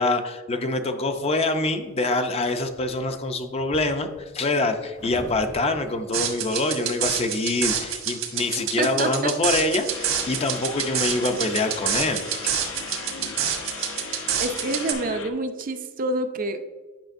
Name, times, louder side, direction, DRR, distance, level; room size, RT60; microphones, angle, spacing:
voice 1, 0.0-12.6, left 2 dB, 30° left, 7 dB, 0.5 m, -25 dB
sound 1, 1.1-1.9 2.4-7.2, left 1 dB, 85° left, 2.1 m, -45 dB
sound 2, 6.1-14.9, right 8 dB, 75° right, 1.3 m, -27 dB
voice 2, 8.8-9.1 14.4-16.6, right 2 dB, 45° right, 8 dB, 0.5 m, -27 dB
sound 3, 9.9-15.3, left 4 dB, 70° left, 0.7 m, -37 dB
8.9 x 5.9 x 2.6 m, 1.4 s
head